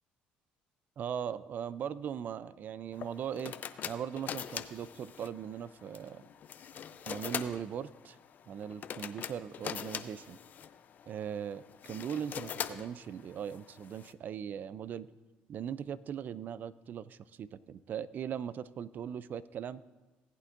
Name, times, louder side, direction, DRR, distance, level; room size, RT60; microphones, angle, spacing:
voice 1, 1.0-3.5 3.9-6.2 7.1-8.2 8.5-10.4 11.1-15.1 15.5-19.8, right 8 dB, 50° right, 18 dB, 0.4 m, -39 dB
sound 1, 2.9-14.1, left 8 dB, 50° left, 0.5 m, -43 dB
18.0 x 8.5 x 2.6 m, 1.2 s
supercardioid pair, 80°, 4 cm